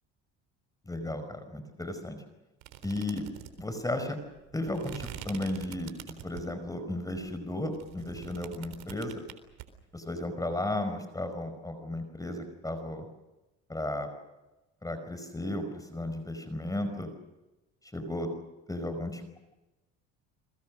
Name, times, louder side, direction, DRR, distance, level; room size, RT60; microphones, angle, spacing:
voice 1, 0.8-2.2 2.8-3.2 3.6-4.2 4.5-9.2 9.9-13.1 13.7-14.1 14.8-17.1 17.9-18.3 18.7-19.4, left 1 dB, 10° left, 9 dB, 5.1 m, -34 dB
sound 1, 2.6-6.6 7.1-9.7, right 13 dB, 80° right, 4.0 m, -45 dB
30.0 x 22.5 x 6.4 m, 1.0 s
supercardioid pair, 95°, 32 cm